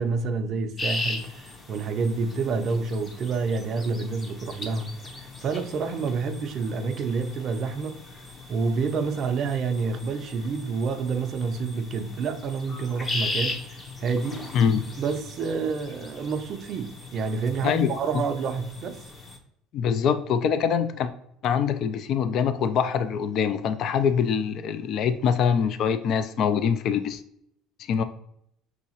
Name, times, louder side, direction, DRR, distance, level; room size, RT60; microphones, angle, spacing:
voice 1, 0.0-8.0 8.5-14.4 15.0-19.1, right 4 dB, 45° right, 0.4 m, -28 dB
sound 1, 0.8-19.4, left 2 dB, 25° left, 0.9 m, -38 dB
voice 2, 17.6-18.2 19.7-21.1 21.4-27.2 27.9-28.0, left 7 dB, 55° left, 0.3 m, -24 dB
6.0 x 2.8 x 2.8 m
cardioid pair, 115°, 0 cm